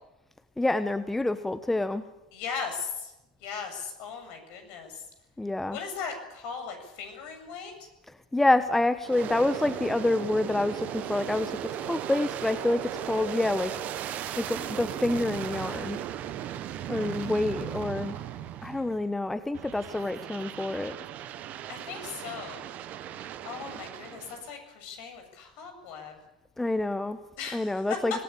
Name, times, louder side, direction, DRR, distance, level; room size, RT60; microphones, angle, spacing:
voice 1, 0.6-2.0 5.4-5.8 8.1-13.7 14.4-16.0 16.9-18.2 18.6-21.0 26.6-27.2 27.5-28.2, left 2 dB, 5° left, 11 dB, 1.1 m, -27 dB
voice 2, 2.3-3.1 3.4-5.0 5.7-7.9 21.7-22.7 23.4-26.1 27.4-27.7, left 6 dB, 50° left, 6 dB, 7.7 m, -38 dB
Aircraft, 9.0-19.1 19.5-24.5, right 11 dB, 40° right, 1.3 m, -37 dB
26.0 x 18.5 x 8.7 m, 0.93 s
figure-of-eight pair, 85°, 4 cm